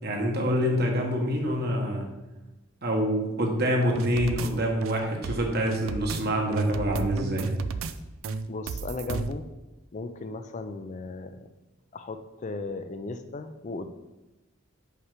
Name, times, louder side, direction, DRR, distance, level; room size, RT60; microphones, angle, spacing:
voice 1, 0.0-2.1 2.8-7.5, equal, 55° right, 1 dB, 1.4 m, -26 dB
sound 1, 4.0-4.5 4.8-6.2 6.5-7.9 8.2-9.3, right 4 dB, 75° right, 0.4 m, -32 dB
voice 2, 8.5-9.5 9.9-11.5 11.9-13.9, left 3 dB, 35° left, 9 dB, 0.4 m, -36 dB
5.8 x 4.8 x 5.7 m, 1.1 s
head